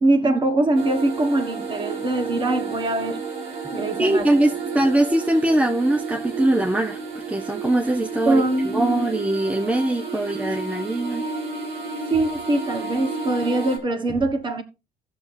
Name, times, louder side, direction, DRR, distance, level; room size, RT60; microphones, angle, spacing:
voice 1, 0.0-3.2 3.7-4.3 8.3-9.1 12.1-14.6, right 2 dB, 30° right, 1.4 m, -22 dB
sound 1, 0.7-13.8, right 4 dB, 85° right, 2.9 m, -32 dB
voice 2, 4.0-11.2, right 1 dB, 10° right, 0.8 m, -22 dB
16.0 x 6.6 x 2.7 m
cardioid pair, 110°, 17 cm